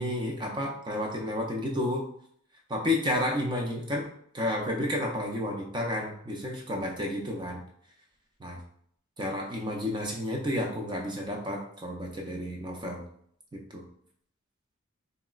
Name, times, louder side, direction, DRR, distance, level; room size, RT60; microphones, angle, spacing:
voice 1, 0.0-2.0 2.7-4.1 4.3-7.6 8.4-8.6 9.2-13.0 13.5-13.8, left 1 dB, 20° right, 1 dB, 0.4 m, -31 dB
3.7 x 2.1 x 2.3 m, 0.65 s
head